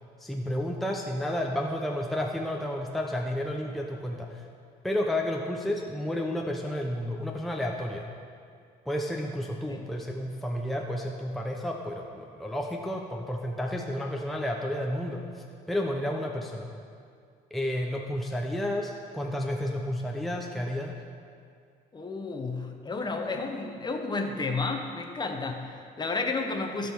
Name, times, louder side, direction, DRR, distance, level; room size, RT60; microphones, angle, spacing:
voice 1, 0.2-4.4 4.8-8.1 8.9-16.7 17.5-21.0, left 1 dB, ahead, 0 dB, 0.7 m, -31 dB
voice 2, 21.9-26.9, left 3 dB, 25° left, 4 dB, 1.0 m, -32 dB
16.0 x 5.4 x 4.6 m, 2.2 s
cardioid pair, 110°, 17 cm